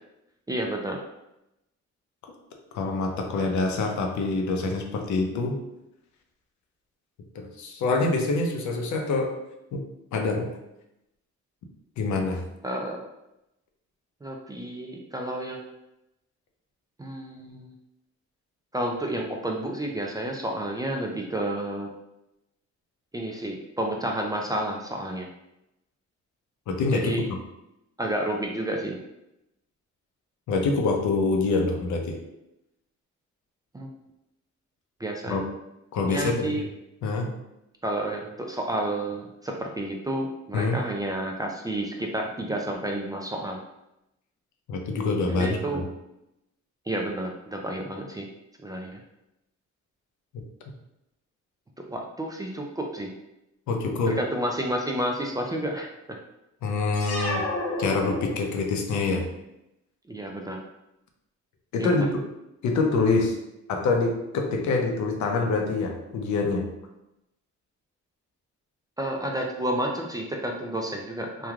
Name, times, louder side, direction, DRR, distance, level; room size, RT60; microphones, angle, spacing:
voice 1, 0.5-1.0 12.6-13.0 14.2-15.6 17.0-17.7 18.7-21.9 23.1-25.3 26.9-27.3 28.0-29.0 33.7-33.9 35.0-35.4 36.0-36.6 37.8-43.6 45.3-45.8 46.9-48.3 48.6-49.0 51.9-53.1 54.1-55.9 60.1-60.6 61.8-62.0 69.0-71.5, right 1 dB, 15° right, 0 dB, 0.3 m, -30 dB
voice 2, 2.7-5.6 7.3-9.3 9.7-9.8 10.1-10.5 12.0-12.4 26.7-27.4 30.5-32.2 35.3-35.5 35.9-36.6 37.0-37.3 40.5-40.8 44.7-45.9 50.3-50.4 53.7-54.2 56.6-57.5 57.8-59.3 61.7-62.2 62.6-63.4 63.7-66.7, left 3 dB, 70° left, 3 dB, 0.6 m, -25 dB
sound 1, 56.9-58.8, left 2 dB, 55° left, 1.0 m, -31 dB
3.1 x 2.3 x 2.4 m, 0.88 s
cardioid pair, 90°, 30 cm